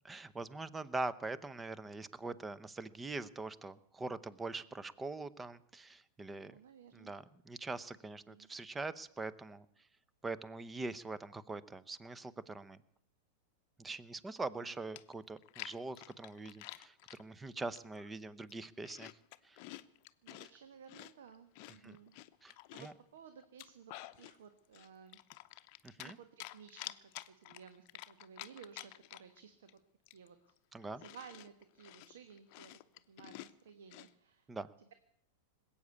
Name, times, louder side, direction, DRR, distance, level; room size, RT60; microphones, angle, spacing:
voice 1, 0.0-6.6 6.9-9.7 10.2-12.8 13.8-19.1 19.4-19.6 21.8-22.0 22.4-22.9 25.8-26.2 30.7-31.0 34.5-34.7, right 3 dB, 15° right, 18 dB, 0.8 m, -43 dB
voice 2, 6.4-7.1 8.3-8.5 14.6-14.7 20.2-22.1 22.7-25.2 26.0-29.8 30.1-30.5 31.0-32.8 33.1-34.5 34.8-34.9, right 7 dB, 75° right, 9 dB, 1.2 m, -56 dB
Chewing mastication, 15.0-17.2 17.7-18.1 18.4-20.5 20.9-23.0 23.4-24.4 24.7-26.1 26.4-29.4 29.7-29.8 30.1-34.1, left 18 dB, 55° left, 0.7 m, -50 dB
20.0 x 8.7 x 8.2 m, 0.74 s
hypercardioid pair, 110°, 0 cm